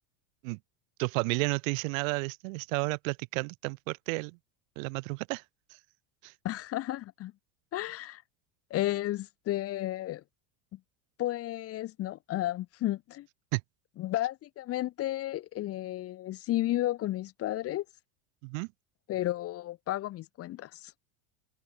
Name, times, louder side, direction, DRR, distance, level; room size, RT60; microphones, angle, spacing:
voice 1, 1.0-4.4 4.8-5.4 6.2-6.3 13.5-13.6 18.4-18.7, right 28 dB, 75° right, 1.7 m, -32 dB
voice 2, 6.4-7.3 7.7-8.2 8.7-10.2 10.7-10.8 11.2-13.3 14.0-17.8 19.1-20.9, left 14 dB, 35° left, 0.7 m, -33 dB
supercardioid pair, 125°, 41 cm